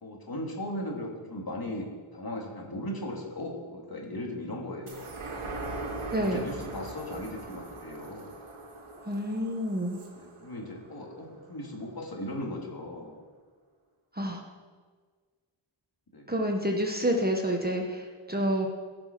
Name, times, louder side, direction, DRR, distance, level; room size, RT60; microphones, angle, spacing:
voice 1, 0.0-5.3 6.1-8.3 10.2-13.2 16.1-16.5, left 1 dB, 45° left, -1 dB, 2.6 m, -37 dB
sound 1, 4.9-11.7 12.1-12.2, right 2 dB, 85° right, 1.8 m, -41 dB
voice 2, 6.1-6.5 9.1-10.0 14.1-14.4 16.3-18.7, equal, 20° right, 1 dB, 1.4 m, -28 dB
15.0 x 6.1 x 6.2 m, 1.5 s
wide cardioid pair, 60°, 49 cm